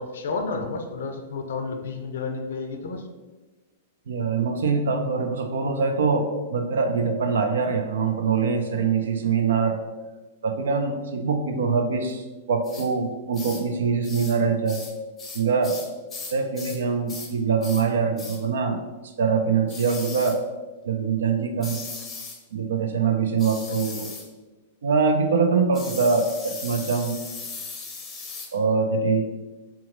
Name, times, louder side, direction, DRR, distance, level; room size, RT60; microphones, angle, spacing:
voice 1, 0.0-3.0, left 4 dB, 65° left, 6 dB, 0.5 m, -31 dB
voice 2, 4.1-9.8 10.4-14.8 15.3-15.8 16.3-18.8 19.2-20.4 20.9-21.8 22.5-24.1 24.8-27.2 28.5-29.3, right 5 dB, 65° right, 5 dB, 0.5 m, -23 dB
sound 1, 12.6-12.9 13.3-13.7 14.0-14.4 14.7-16.8 17.1-17.3 17.6-17.9 18.2-18.4 19.7-20.4 21.6-22.4 23.4-24.3 25.7-28.5, left 4 dB, 20° left, 0.6 m, -38 dB
3.6 x 2.9 x 3.8 m, 1.2 s
figure-of-eight pair, 100°, 0 cm